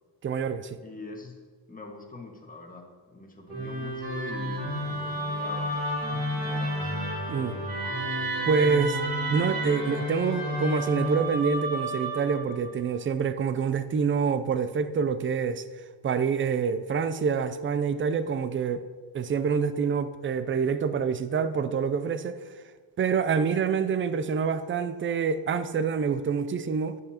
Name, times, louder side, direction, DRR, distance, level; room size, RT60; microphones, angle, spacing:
voice 1, 0.2-0.8 7.3-7.5 8.5-9.0 9.3-15.6 16.0-18.9 19.1-22.4 23.0-27.0, right 6 dB, 25° right, 0.4 m, -26 dB
voice 2, 0.8-1.3 1.7-7.0 7.4-7.7, left 2 dB, 15° left, 1.6 m, -43 dB
Musical instrument, 3.5-12.7, equal, 45° right, 2.4 m, -31 dB
10.5 x 8.3 x 2.9 m
cardioid pair, 95°, 49 cm